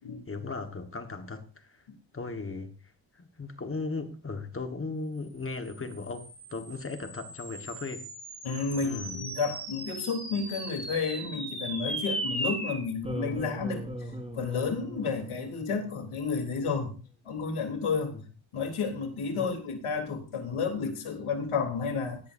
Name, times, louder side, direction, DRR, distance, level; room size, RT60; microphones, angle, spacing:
voice 1, 0.3-1.8 2.1-2.7 3.1-8.1 8.8-9.2 18.1-18.2 19.3-19.5, left 3 dB, 25° left, 1.5 m, -37 dB
sound 1, 5.6-16.2, right 1 dB, 10° right, 4.6 m, -38 dB
voice 2, 8.4-17.0 17.3-18.2 18.5-22.2, left 5 dB, 85° left, 3.5 m, -31 dB
18.0 x 15.5 x 2.7 m
wide cardioid pair, 150°, 49 cm